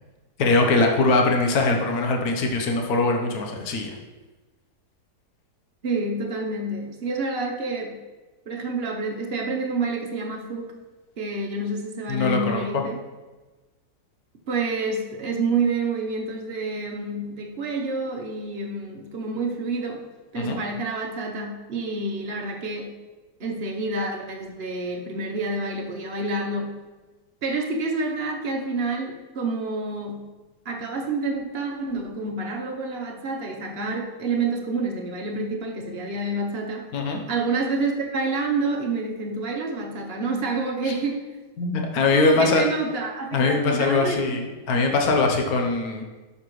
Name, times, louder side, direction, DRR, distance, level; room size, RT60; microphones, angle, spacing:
voice 1, 0.4-3.9 12.1-12.8 20.3-20.6 36.9-37.2 40.8-40.9 41.6-42.6 43.3-46.0, left 3 dB, 65° left, 2 dB, 1.4 m, -22 dB
voice 2, 5.8-8.0 8.5-10.7 11.2-13.0 14.5-20.0 20.3-23.0 23.4-26.8 27.4-30.3 30.6-36.9 37.3-41.2 42.1-44.4, right 3 dB, 40° right, 1 dB, 1.1 m, -28 dB
11.0 x 6.8 x 3.2 m, 1.2 s
omnidirectional pair, 1.8 m